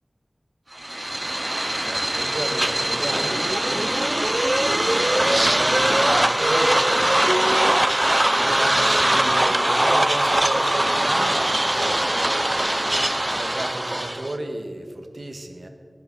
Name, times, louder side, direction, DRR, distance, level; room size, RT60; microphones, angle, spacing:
sound 1, 0.8-14.4, right 1 dB, 30° right, 0.6 m, -21 dB
voice 1, 1.7-4.8 5.7-7.1 8.2-12.2 13.3-15.7, right 1 dB, 75° right, 5 dB, 1.7 m, -33 dB
19.5 x 11.0 x 4.3 m, 2.2 s
wide cardioid pair, 50°, 0 cm